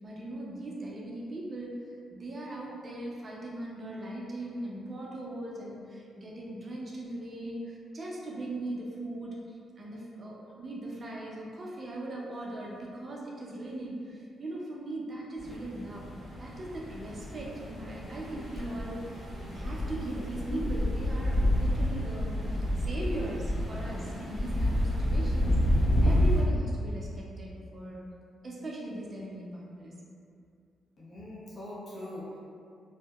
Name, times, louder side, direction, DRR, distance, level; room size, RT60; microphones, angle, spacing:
voice 1, 0.0-16.1 16.4-25.6 26.0-28.1 28.4-29.9, right 1 dB, 40° right, -3 dB, 0.5 m, -39 dB
sound 1, 15.4-26.4, left 1 dB, 25° left, 1.2 m, -29 dB
voice 2, 31.0-32.4, left 1 dB, 50° left, -8 dB, 0.6 m, -42 dB
2.6 x 2.1 x 2.3 m, 2.4 s
cardioid pair, 80°, 0 cm